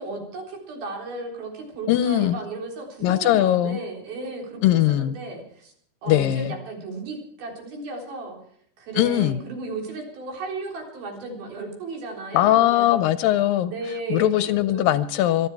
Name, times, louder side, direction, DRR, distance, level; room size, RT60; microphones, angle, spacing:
voice 1, 0.0-4.6 4.9-5.7 6.0-8.4 8.8-13.1 13.7-14.9, right 3 dB, 75° right, 1 dB, 5.6 m, -35 dB
voice 2, 1.9-2.4 3.0-3.8 4.6-5.2 6.1-6.5 9.0-9.4 12.3-13.7 14.1-15.5, left 13 dB, 75° left, 13 dB, 2.3 m, -20 dB
25.0 x 11.0 x 4.7 m, 0.64 s
omnidirectional pair, 4.3 m